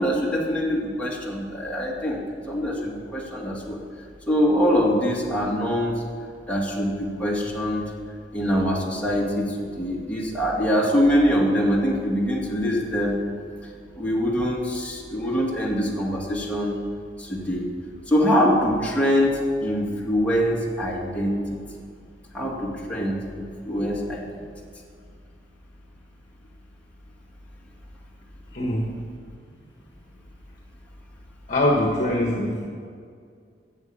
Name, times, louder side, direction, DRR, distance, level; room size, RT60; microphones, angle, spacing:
voice 1, 0.0-3.8 4.3-6.0 6.5-7.9 8.3-13.2 14.0-16.7 17.2-17.7 18.1-21.4 22.3-24.5, equal, 10° left, -4 dB, 2.2 m, -24 dB
voice 2, 28.5-29.0 31.5-32.7, left 1 dB, 45° left, -1 dB, 1.4 m, -23 dB
10.5 x 7.6 x 8.8 m, 2.2 s
head